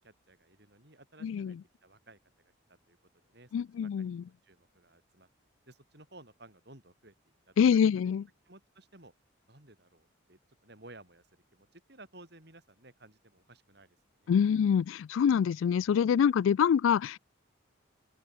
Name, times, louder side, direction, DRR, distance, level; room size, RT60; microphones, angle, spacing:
voice 1, 0.0-3.0 3.2-3.5 3.8-5.3 5.7-7.1 7.5-8.1 8.5-9.1 9.5-14.0 14.2-14.4, right 2 dB, 55° right, 5.2 m, -56 dB
voice 2, 1.2-1.6 3.5-4.2 7.6-8.2 14.3-17.2, left 7 dB, 80° left, 0.3 m, -25 dB
open air
head